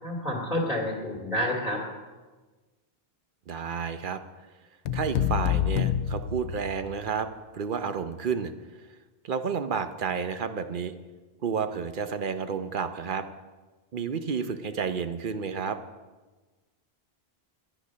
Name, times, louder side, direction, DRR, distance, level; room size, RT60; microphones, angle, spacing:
voice 1, 0.0-1.8, left 1 dB, ahead, -3 dB, 2.3 m, -29 dB
voice 2, 3.5-4.2 4.9-7.3 7.5-8.5 8.8-8.9 9.2-10.9 11.4-13.2 13.9-15.8, right 6 dB, 55° right, 9 dB, 0.8 m, -31 dB
sound 1, 4.9-7.1, left 10 dB, 85° left, 0.9 m, -28 dB
10.5 x 10.0 x 6.2 m, 1.3 s
omnidirectional pair, 1.1 m